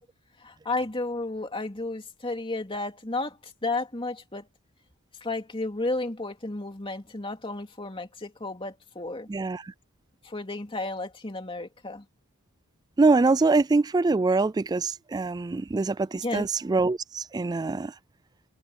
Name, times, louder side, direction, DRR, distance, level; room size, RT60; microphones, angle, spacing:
voice 1, 0.4-4.4 5.2-9.3 10.2-12.0 16.2-16.5, left 2 dB, 25° left, 2.7 m, -32 dB
voice 2, 9.3-9.7 13.0-17.9, right 3 dB, 20° right, 0.3 m, -24 dB
head